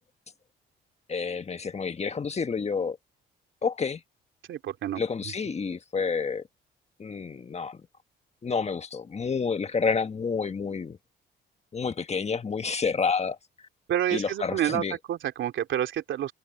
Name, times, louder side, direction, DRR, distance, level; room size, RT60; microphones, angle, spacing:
voice 1, 1.1-3.0 3.6-4.0 5.0-6.4 7.0-7.8 8.4-11.0 11.7-13.4 14.1-14.9, left 5 dB, 35° left, 1.4 m, -29 dB
voice 2, 4.5-5.0 13.9-14.8 15.1-16.3, right 11 dB, 75° right, 3.0 m, -28 dB
cardioid pair, 90°, 20 cm